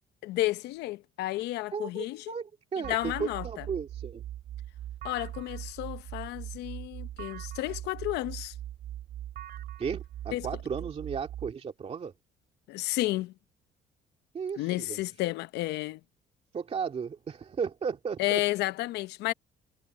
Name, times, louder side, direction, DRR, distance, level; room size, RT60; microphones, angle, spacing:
voice 1, 0.2-2.3 2.9-3.7 5.0-8.5 10.3-10.5 12.7-13.3 14.6-16.0 18.2-19.3, left 17 dB, 85° left, 0.8 m, -32 dB
voice 2, 1.7-4.2 9.8-12.1 14.3-15.0 16.5-18.4, right 6 dB, 35° right, 2.4 m, -35 dB
sound 1, 2.8-11.5, right 12 dB, 65° right, 3.2 m, -41 dB
cardioid pair, 110°, 17 cm